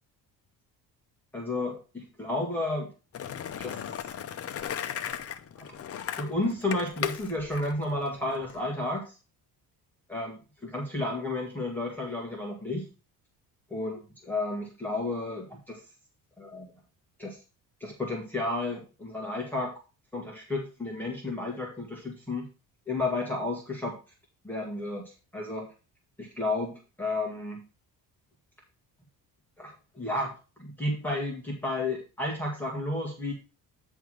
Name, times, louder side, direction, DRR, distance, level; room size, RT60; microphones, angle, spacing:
voice 1, 1.3-2.9 3.6-3.8 6.2-9.2 10.1-10.3 10.6-12.9 13.7-14.0 14.3-15.8 16.4-16.7 17.2-17.4 17.8-19.7 20.1-22.5 22.9-24.0 24.4-25.0 25.3-25.7 26.2-27.6 29.6-33.3, left 2 dB, 5° left, -3 dB, 1.8 m, -32 dB
Skateboard, 3.1-8.6, left 9 dB, 40° left, 0.7 m, -36 dB
9.3 x 3.6 x 6.2 m, 0.32 s
cardioid pair, 155°, 37 cm